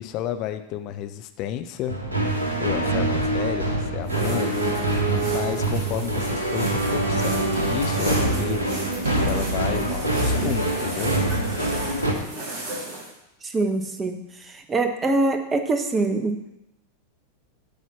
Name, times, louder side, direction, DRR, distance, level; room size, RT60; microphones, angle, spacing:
voice 1, 0.0-2.0 2.6-3.7 3.9-4.6 5.3-8.6 9.1-11.1, left 11 dB, 40° left, 10 dB, 0.5 m, -31 dB
sound 1, 1.9-12.1, right 2 dB, 80° right, 1.0 m, -24 dB
sound 2, 4.0-13.1, right 1 dB, 40° right, 2.2 m, -35 dB
voice 2, 13.4-14.2 14.5-16.5, right 2 dB, 20° right, 6 dB, 0.9 m, -24 dB
8.3 x 4.2 x 5.9 m, 0.86 s
figure-of-eight pair, 90°, 0 cm